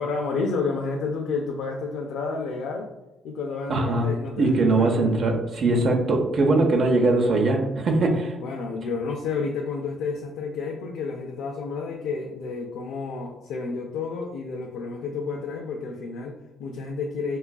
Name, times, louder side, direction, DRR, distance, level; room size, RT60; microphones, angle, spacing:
voice 1, 0.0-2.9 3.2-4.9 5.6-6.0 8.4-17.4, left 4 dB, 85° left, 0 dB, 0.4 m, -30 dB
voice 2, 3.7-4.1 4.4-8.4, right 2 dB, 55° right, 2 dB, 0.6 m, -21 dB
4.6 x 2.4 x 2.3 m, 0.97 s
cardioid pair, 90°, 0 cm